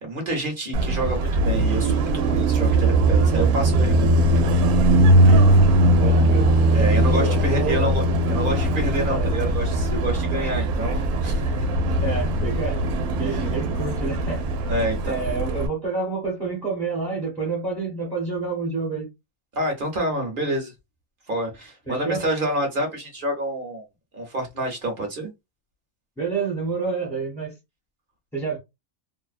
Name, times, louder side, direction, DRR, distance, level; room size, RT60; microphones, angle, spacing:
voice 1, 0.0-4.1 6.7-8.0 8.3-11.7 13.2-13.5 14.7-15.2 19.5-20.7 21.3-23.8 24.1-25.3, right 1 dB, 45° right, 0.9 m, -28 dB
Car passing by, 0.7-15.7, right 1 dB, 85° right, 1.1 m, -20 dB
voice 2, 6.0-6.5 7.1-7.9 9.1-9.3 10.4-10.5 12.0-12.8 13.2-14.8 15.0-19.1 21.9-22.3 26.2-27.5 28.3-28.6, right 4 dB, ahead, 0.7 m, -28 dB
2.6 x 2.1 x 2.4 m
omnidirectional pair, 1.5 m